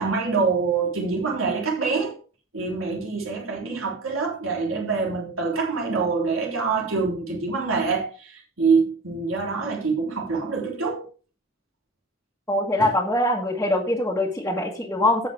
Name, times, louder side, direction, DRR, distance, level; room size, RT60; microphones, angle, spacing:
voice 1, 0.0-2.1 2.5-11.1 12.8-12.9, right 4 dB, 80° right, 3.6 m, -25 dB
voice 2, 12.5-15.3, left 1 dB, 10° left, 1.7 m, -23 dB
17.0 x 5.9 x 3.5 m
head